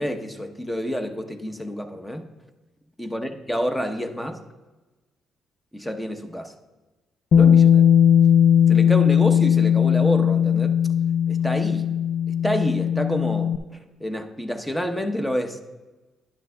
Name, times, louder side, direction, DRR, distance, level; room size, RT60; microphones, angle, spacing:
voice 1, 0.0-2.3 3.0-4.4 5.7-6.5 7.3-7.9 8.7-10.7 11.3-11.9 12.3-13.5 14.0-15.6, equal, 5° left, 7 dB, 0.8 m, -28 dB
Bass guitar, 7.3-13.6, left 9 dB, 70° left, 0.5 m, -18 dB
12.0 x 10.0 x 2.2 m, 1.2 s
cardioid pair, 90°, 0 cm